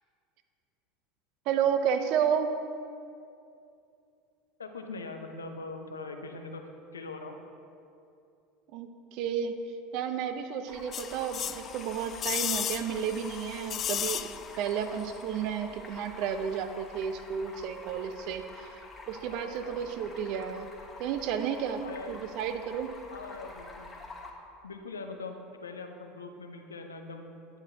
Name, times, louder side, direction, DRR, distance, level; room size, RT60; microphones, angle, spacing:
voice 1, 1.5-2.5 8.7-9.6 9.9-14.3 14.6-18.8 19.1-20.7 21.0-23.0, right 8 dB, 50° right, 8 dB, 0.6 m, -32 dB
voice 2, 4.6-6.6 6.9-7.4 19.3-19.8 21.8-22.3 23.1-23.9 24.6-27.4, left 3 dB, 80° left, 5 dB, 0.7 m, -42 dB
Stream, 10.7-24.3, left 2 dB, 20° left, 1.3 m, -47 dB
sound 1, 10.9-14.7 15.0-15.1, left 9 dB, 35° left, 0.3 m, -34 dB
10.0 x 10.0 x 2.8 m, 2.5 s
figure-of-eight pair, 75°, 0 cm